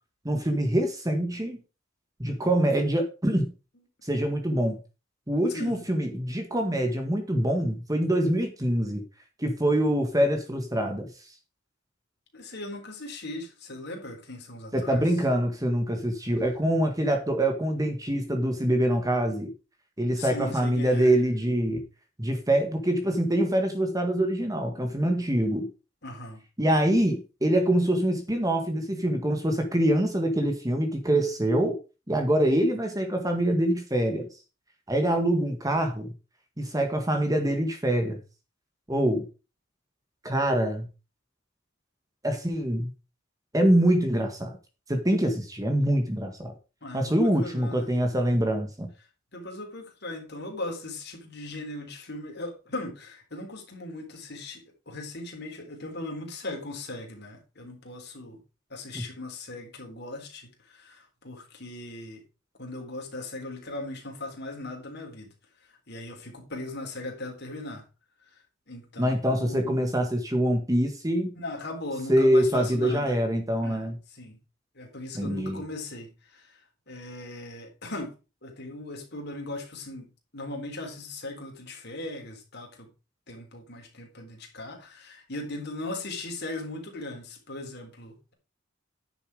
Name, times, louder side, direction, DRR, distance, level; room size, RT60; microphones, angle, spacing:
voice 1, 0.2-1.6 2.2-3.5 4.0-4.8 5.3-9.0 9.4-11.1 14.7-19.5 20.0-21.8 22.2-25.7 26.6-31.8 32.1-34.3 34.9-36.1 36.6-38.2 38.9-39.3 40.2-40.8 42.2-42.9 43.5-44.6 44.9-46.5 46.9-48.9 58.9-59.0 69.0-71.3 72.1-74.0 75.1-75.6, right 1 dB, 15° right, 1.6 m, -25 dB
voice 2, 5.5-5.8 12.3-15.0 20.2-21.1 26.0-26.4 46.8-47.9 49.3-58.4 58.7-62.2 62.6-65.3 65.9-67.8 68.7-69.9 71.4-73.2 73.6-73.9 74.2-74.4 74.8-76.6 76.9-78.1 78.4-82.9 83.3-88.3, left 2 dB, 55° left, 3.7 m, -38 dB
10.0 x 7.1 x 4.9 m
head